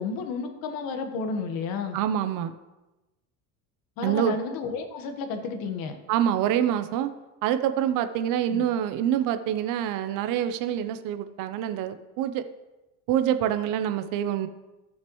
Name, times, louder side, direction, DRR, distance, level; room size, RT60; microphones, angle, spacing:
voice 1, 0.0-2.0 4.0-6.0 8.5-8.6, left 4 dB, 65° left, 6 dB, 1.4 m, -32 dB
voice 2, 1.9-2.5 4.0-4.4 6.1-7.1 7.4-12.4 13.1-14.5, right 10 dB, 60° right, 10 dB, 0.7 m, -26 dB
14.5 x 6.5 x 3.1 m, 1.0 s
cardioid pair, 155°, 36 cm